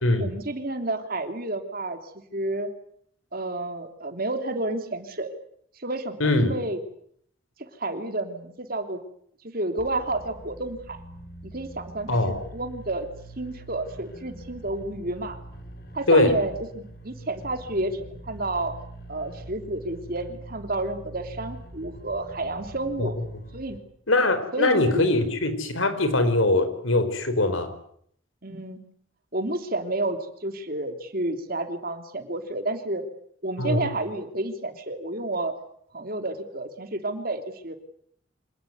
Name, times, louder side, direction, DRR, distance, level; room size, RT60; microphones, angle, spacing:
voice 1, 0.2-2.0 2.3-2.7 3.3-5.3 5.8-6.8 7.6-9.0 9.4-11.0 11.4-13.1 13.4-15.4 15.9-18.7 19.1-23.1 23.5-23.8 24.5-25.1 28.4-28.8 29.3-33.0 33.4-35.5 35.9-37.8, right 2 dB, 45° right, 7 dB, 3.1 m, -30 dB
voice 2, 6.2-6.5 12.1-12.4 16.1-16.4 23.0-23.1 24.1-27.7 33.6-33.9, left 2 dB, 90° left, 10 dB, 4.7 m, -22 dB
sound 1, 9.8-23.8, right 1 dB, 55° left, 4.0 m, -44 dB
26.0 x 19.0 x 9.4 m, 0.68 s
head